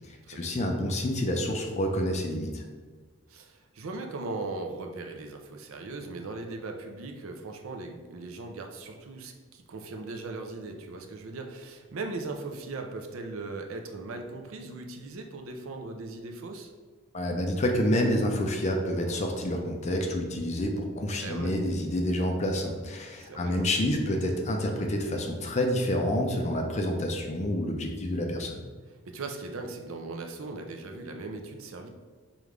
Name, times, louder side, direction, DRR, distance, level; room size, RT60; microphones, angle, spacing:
voice 1, 0.1-2.6 17.1-28.6, left 1 dB, 30° left, 2 dB, 0.4 m, -28 dB
voice 2, 3.3-16.7 21.2-21.5 23.2-23.7 29.1-31.9, right 3 dB, 75° right, 4 dB, 0.5 m, -39 dB
5.0 x 2.4 x 3.2 m, 1.4 s
head